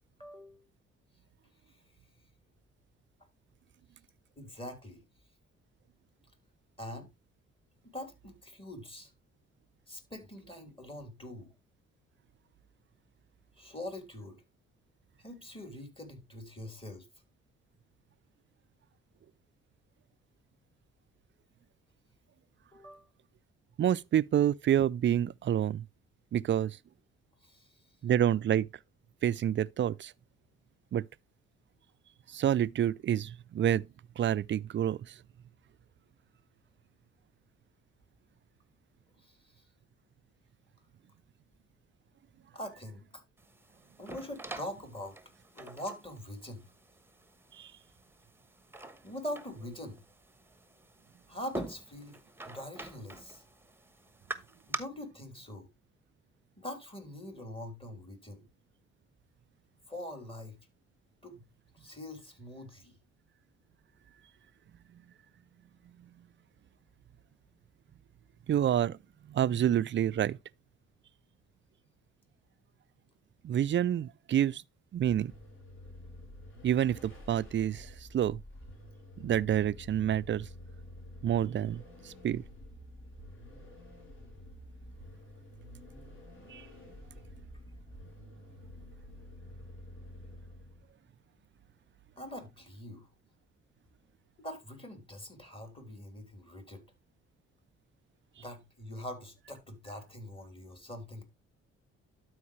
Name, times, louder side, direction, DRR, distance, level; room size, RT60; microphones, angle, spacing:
voice 1, 0.2-0.7 1.7-1.8 4.4-5.0 6.8-7.1 7.8-9.1 9.9-11.5 13.5-14.4 15.2-17.1 22.7-23.1 27.4-27.9 39.2-39.6 42.5-43.2 44.0-45.2 45.5-46.6 49.0-50.0 51.3-53.4 54.7-55.7 56.6-58.5 59.9-60.6 61.2-61.4 61.7-63.0 92.2-93.1 94.4-96.8 98.4-101.2, left 1 dB, 15° left, 3.3 m, -43 dB
voice 2, 23.8-25.9 26.3-26.8 28.0-28.7 29.2-30.1 30.9-31.1 32.3-33.9 34.2-35.1 47.6-47.7 68.5-69.0 69.3-70.4 73.4-74.6 74.9-75.3 76.6-78.4 79.2-80.5 81.2-82.4 86.5-86.7, right 10 dB, 40° right, 0.4 m, -28 dB
sound 1, 43.4-54.8, right 2 dB, 5° right, 1.2 m, -46 dB
Vehicle, 75.0-90.9, left 1 dB, 40° left, 3.7 m, -50 dB
12.0 x 4.8 x 3.2 m
supercardioid pair, 55°, 30 cm